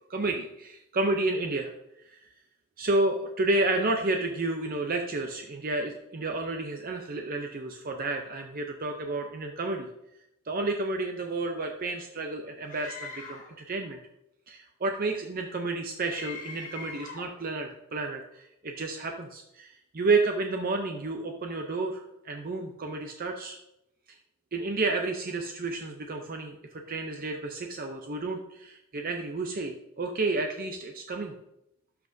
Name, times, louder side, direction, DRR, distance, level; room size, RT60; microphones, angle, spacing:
voice 1, 0.1-1.7 2.0-2.3 2.8-9.9 10.5-13.4 13.7-14.0 14.5-23.6 24.5-31.3, right 2 dB, 40° right, 3 dB, 0.6 m, -31 dB
Screaming, 12.7-13.6 16.0-17.3, left 4 dB, 35° left, 1.2 m, -42 dB
12.5 x 5.7 x 2.7 m, 0.84 s
head